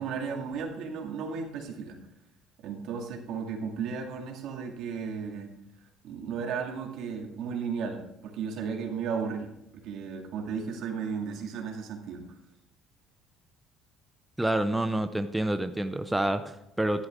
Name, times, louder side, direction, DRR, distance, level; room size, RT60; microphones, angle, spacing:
voice 1, 0.0-2.0 2.6-5.5 6.0-12.4, right 6 dB, 70° right, 2 dB, 2.2 m, -34 dB
voice 2, 14.4-17.1, right 1 dB, 5° right, 9 dB, 0.6 m, -28 dB
11.0 x 10.5 x 3.7 m, 0.83 s
cardioid pair, 95°, 0 cm